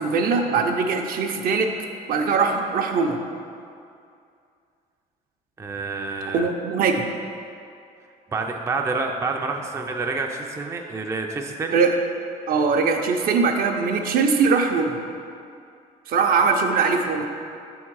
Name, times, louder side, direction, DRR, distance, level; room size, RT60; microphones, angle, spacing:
voice 1, 0.0-1.8 2.1-3.2 6.3-7.0 11.7-12.0 12.5-15.0 16.1-17.2, right 5 dB, 60° right, 3 dB, 0.6 m, -21 dB
voice 2, 5.6-6.5 8.3-11.8, right 3 dB, 15° right, 2 dB, 0.4 m, -28 dB
6.8 x 3.6 x 4.6 m, 2.4 s
cardioid pair, 110°, 17 cm